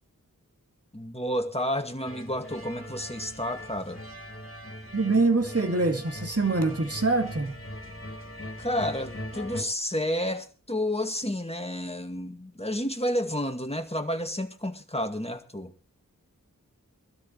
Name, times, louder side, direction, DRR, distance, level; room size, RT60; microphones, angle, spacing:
voice 1, 0.9-4.0 8.6-15.7, equal, 20° left, 2.1 m, -30 dB
sound 1, 2.0-9.6, equal, 40° left, 3.1 m, -40 dB
voice 2, 4.9-7.6, right 3 dB, 45° right, 2.4 m, -24 dB
23.5 x 13.0 x 3.2 m
wide cardioid pair, 50°, 34 cm